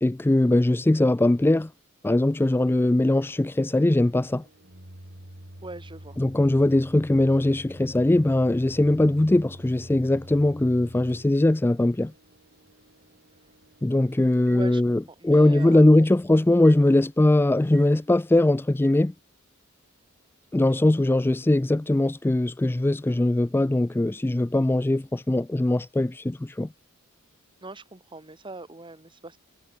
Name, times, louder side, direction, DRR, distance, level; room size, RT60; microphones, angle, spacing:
voice 1, 0.0-1.7 2.0-4.4 6.2-12.1 13.8-19.1 20.5-26.7, left 1 dB, 10° left, 0.3 m, -21 dB
Microwave oven, 2.6-15.1 15.6-15.7 16.6-16.8 17.7-17.9 18.8-19.0, right 1 dB, 50° right, 5.5 m, -47 dB
voice 2, 5.6-6.2 14.5-16.1 27.6-29.4, right 2 dB, 25° right, 2.1 m, -41 dB
head